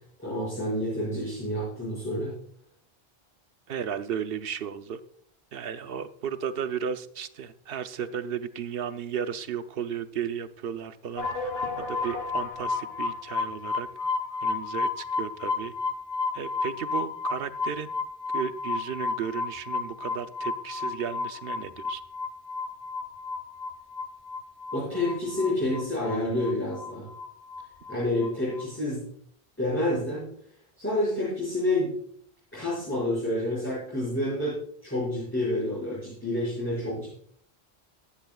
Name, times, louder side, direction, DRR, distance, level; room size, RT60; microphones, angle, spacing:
voice 1, 0.2-2.3 24.7-27.1 27.9-29.0 29.6-30.3 30.8-31.9 32.5-37.1, left 1 dB, 10° left, -10 dB, 5.7 m, -28 dB
voice 2, 3.7-5.0 5.5-11.5 11.8-13.9 14.4-15.7 16.3-17.9 18.3-22.0, right 8 dB, 70° right, 11 dB, 0.9 m, -34 dB
sound 1, 11.2-27.9 28.2-28.6, left 4 dB, 75° left, 1.6 m, -31 dB
15.5 x 11.5 x 2.3 m, 0.63 s
omnidirectional pair, 1.0 m